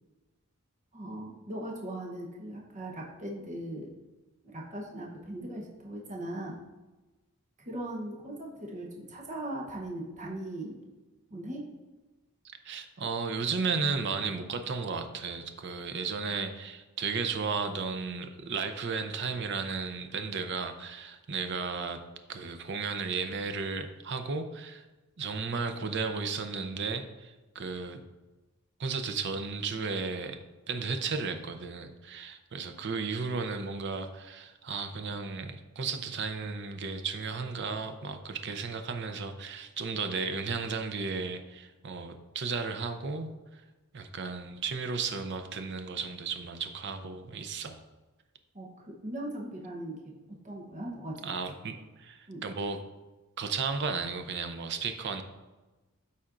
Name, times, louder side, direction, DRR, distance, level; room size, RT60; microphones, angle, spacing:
voice 1, 0.9-3.9 4.4-6.6 7.6-10.8 11.3-11.6 48.5-50.1 50.4-51.3 52.3-52.4, right 1 dB, 35° right, -2 dB, 0.9 m, -39 dB
voice 2, 12.6-22.0 22.3-24.8 25.2-28.0 28.8-30.4 30.7-43.3 43.9-47.8 51.2-52.8 53.4-55.2, right 4 dB, 55° right, 8 dB, 0.6 m, -34 dB
12.5 x 4.2 x 2.5 m, 1.1 s
head